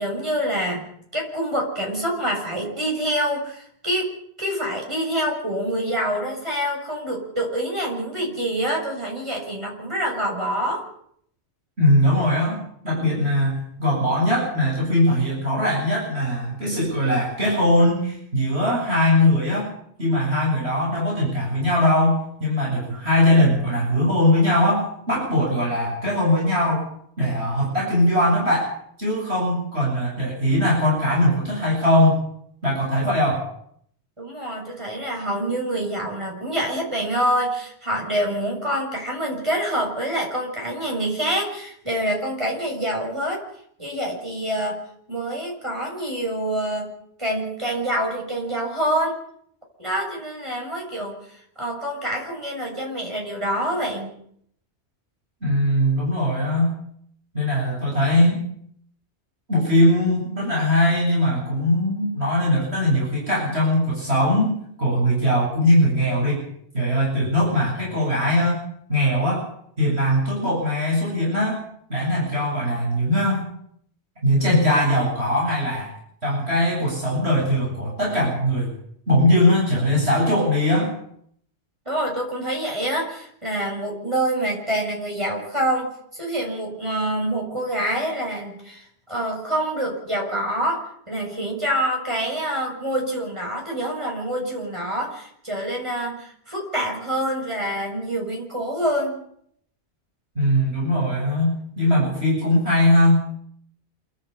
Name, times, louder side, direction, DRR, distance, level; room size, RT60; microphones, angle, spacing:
voice 1, 0.0-10.8 34.2-43.5 43.8-44.8 45.1-46.9 47.2-49.2 49.8-54.1 81.9-99.2, right 1 dB, 25° right, -1 dB, 6.9 m, -26 dB
voice 2, 11.8-12.6 12.8-19.7 20.0-26.8 27.2-28.7 29.0-32.2 32.6-33.5 55.4-56.7 57.3-58.4 59.5-66.4 66.7-69.5 69.8-71.6 71.9-73.4 74.2-75.9 76.2-78.7 79.1-80.9 100.3-103.2, left 1 dB, 65° right, -4 dB, 8.3 m, -20 dB
28.5 x 10.5 x 8.6 m, 0.67 s
omnidirectional pair, 1.1 m